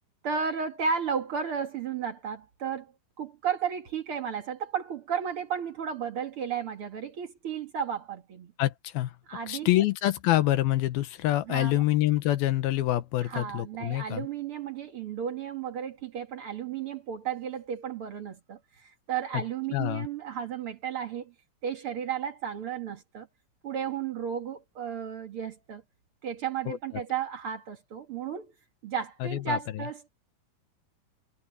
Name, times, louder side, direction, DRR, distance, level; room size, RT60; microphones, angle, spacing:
voice 1, 0.2-2.9 3.2-8.5 9.3-9.7 11.5-11.7 13.2-21.3 21.6-23.3 23.6-25.8 26.2-28.5 28.8-30.1, right 7 dB, 55° right, 1.6 m, -33 dB
voice 2, 8.6-9.2 9.5-14.3 19.3-19.4 19.7-20.1 26.7-26.8 29.2-29.6, left 15 dB, 75° left, 2.6 m, -26 dB
omnidirectional pair, 4.6 m